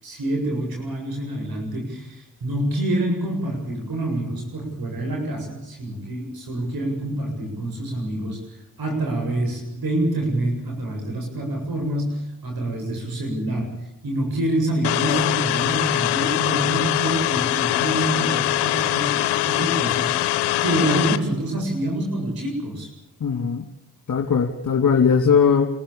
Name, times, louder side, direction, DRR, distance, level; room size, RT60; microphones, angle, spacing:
voice 1, 0.0-22.9, right 1 dB, 65° right, 2 dB, 7.6 m, -27 dB
sound 1, 14.8-21.2, left 15 dB, 90° left, 1.1 m, -22 dB
voice 2, 23.2-23.6 24.1-25.7, left 6 dB, 50° left, 3 dB, 2.9 m, -19 dB
27.0 x 14.5 x 8.7 m, 0.82 s
supercardioid pair, 50°, 39 cm